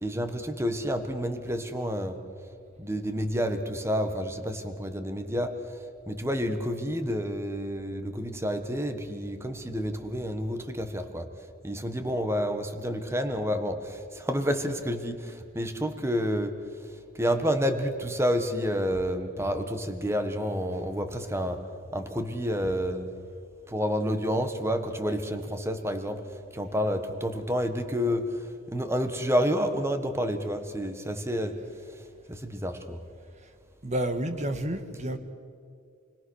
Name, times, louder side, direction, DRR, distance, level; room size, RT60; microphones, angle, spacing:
voice 1, 0.0-2.2 2.8-5.8 6.1-11.3 11.6-16.5 17.1-21.6 21.9-23.1 23.7-26.2 26.5-31.6 31.9-32.0 32.3-33.0, equal, 15° right, 7 dB, 1.4 m, -29 dB
voice 2, 33.8-35.2, right 1 dB, 35° right, 8 dB, 1.7 m, -30 dB
29.0 x 21.0 x 6.5 m, 2.4 s
head